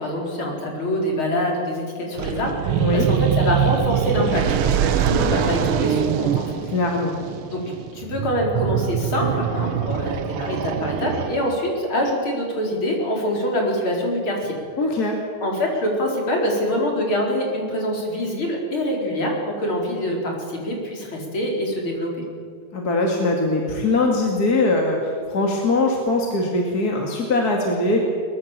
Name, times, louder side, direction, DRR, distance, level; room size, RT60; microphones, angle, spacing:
voice 1, 0.0-6.5 7.5-7.6 7.9-14.6 15.4-22.2, equal, 70° left, 0 dB, 5.2 m, -25 dB
sound 1, 2.2-11.7, right 9 dB, 80° right, 1.9 m, -24 dB
voice 2, 2.8-3.1 6.7-7.2 14.8-15.2 22.7-28.0, left 2 dB, 45° left, 1 dB, 2.8 m, -21 dB
22.5 x 21.0 x 7.5 m, 2.1 s
omnidirectional pair, 2.4 m